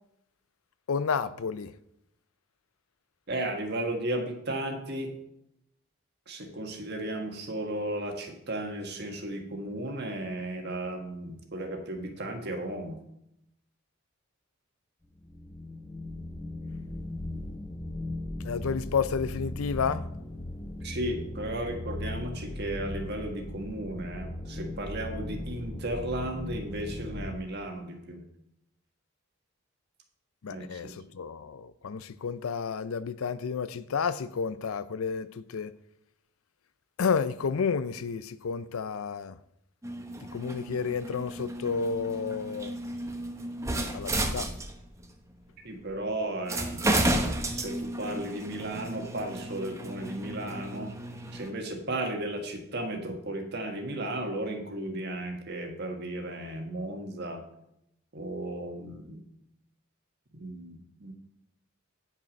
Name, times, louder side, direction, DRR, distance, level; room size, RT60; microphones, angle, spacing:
voice 1, 0.9-1.7 18.4-20.0 30.4-35.7 37.0-39.4 40.3-42.8 43.9-44.5, left 5 dB, 85° left, 0.5 m, -31 dB
voice 2, 3.3-5.1 6.3-13.0 20.8-28.2 30.5-30.8 45.6-46.8 47.5-50.9 51.3-57.4 58.1-59.2 60.3-61.1, right 1 dB, 50° right, 1.5 m, -35 dB
sound 1, 15.2-27.4, left 1 dB, 15° left, 0.9 m, -38 dB
sound 2, 39.8-45.0 45.9-46.0 46.5-51.5, right 1 dB, 15° right, 0.9 m, -33 dB
9.5 x 5.9 x 5.2 m
head